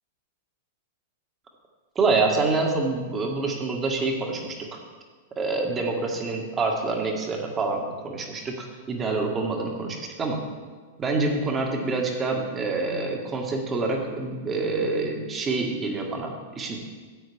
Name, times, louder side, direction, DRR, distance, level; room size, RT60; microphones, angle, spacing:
voice 1, 2.0-4.8 5.4-10.4 11.0-16.8, right 3 dB, 25° right, 1 dB, 1.9 m, -27 dB
13.0 x 8.9 x 3.6 m, 1.5 s
figure-of-eight pair, 100°, 0 cm